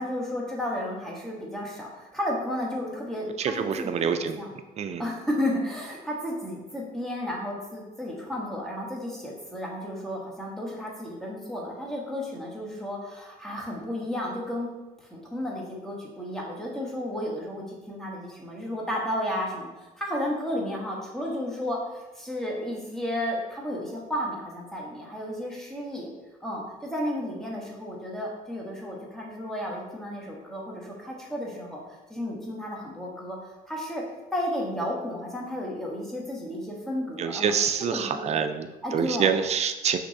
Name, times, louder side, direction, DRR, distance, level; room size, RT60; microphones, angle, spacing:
voice 1, 0.0-4.5 5.0-14.7 15.0-26.1 26.4-31.8 32.1-34.0 34.3-37.5 37.9-38.4 38.8-39.3, left 1 dB, ahead, -3 dB, 1.1 m, -33 dB
voice 2, 3.4-4.4 4.8-5.0 37.2-40.0, right 7 dB, 40° right, 8 dB, 0.4 m, -26 dB
5.8 x 3.0 x 2.8 m, 1.1 s
cardioid pair, 110°, 17 cm